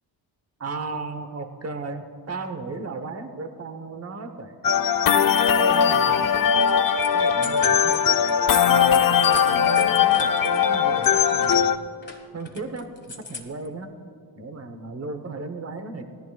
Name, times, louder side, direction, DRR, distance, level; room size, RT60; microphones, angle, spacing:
voice 1, 0.6-4.7 5.6-6.5 7.1-8.2 8.6-11.8 12.3-13.9 14.4-16.1, right 3 dB, 35° right, 8 dB, 1.1 m, -35 dB
sound 1, 4.6-11.8, left 7 dB, 50° left, 0.6 m, -20 dB
sound 2, 5.4-5.9 6.3-10.6 11.0-13.7, left 3 dB, 25° left, 1.6 m, -40 dB
18.5 x 14.0 x 2.4 m, 2.4 s
cardioid pair, 70°, 44 cm